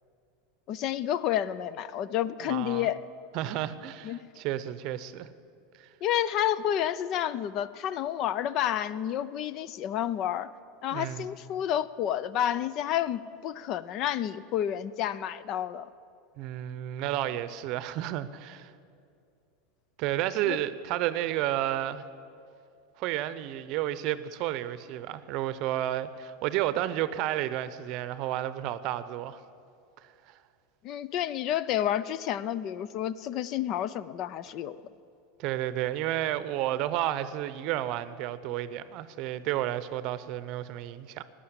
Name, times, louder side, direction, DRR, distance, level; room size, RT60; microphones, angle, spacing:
voice 1, 0.7-3.0 4.0-4.2 6.0-10.5 10.8-15.9 20.5-20.6 30.8-34.8, left 11 dB, 50° left, 17 dB, 0.5 m, -30 dB
voice 2, 2.4-2.9 3.3-5.3 5.8-5.9 10.9-11.3 16.4-18.7 20.0-22.0 23.0-29.4 30.3-30.4 35.4-41.2, right 13 dB, 55° right, 14 dB, 0.7 m, -31 dB
14.0 x 9.8 x 8.1 m, 2.5 s
supercardioid pair, 110°, 0 cm